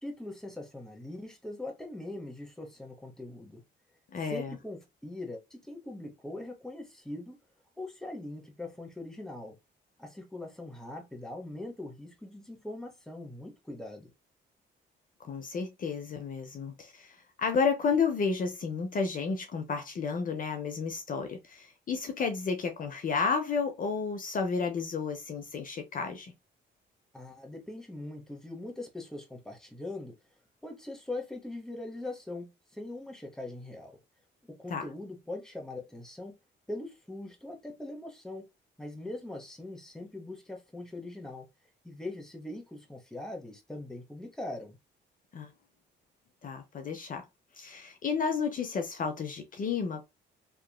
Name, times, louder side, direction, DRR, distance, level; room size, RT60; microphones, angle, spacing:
voice 1, 0.0-3.6 4.2-7.4 7.8-9.6 10.0-14.1 27.1-30.2 30.6-34.0 34.5-36.3 36.7-38.5 38.8-41.5 41.8-44.8, left 2 dB, 5° left, 0.9 m, -41 dB
voice 2, 4.1-4.5 15.2-26.3 34.7-34.8 45.3-45.5 46.4-47.2 47.6-50.1, left 5 dB, 45° left, 0.6 m, -32 dB
2.8 x 2.5 x 2.3 m
cardioid pair, 90°, 20 cm